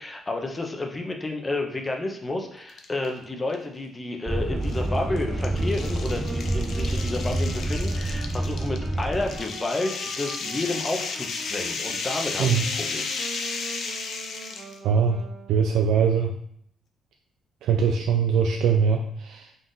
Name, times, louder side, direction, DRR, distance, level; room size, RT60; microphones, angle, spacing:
voice 1, 0.0-13.0, left 2 dB, 20° left, 3 dB, 0.7 m, -31 dB
sound 1, 2.7-3.1 3.5-3.6 4.6-14.8, left 4 dB, 60° left, 0.5 m, -33 dB
sound 2, 4.3-9.4, right 1 dB, 10° right, 0.4 m, -27 dB
Wind instrument woodwind instrument, 4.8-15.7, right 4 dB, 45° right, 0.8 m, -43 dB
voice 2, 14.8-15.2 15.5-16.4 17.6-19.6, right 6 dB, 85° right, 3 dB, 0.3 m, -22 dB
3.8 x 2.5 x 3.8 m, 0.68 s
cardioid pair, 90°, 0 cm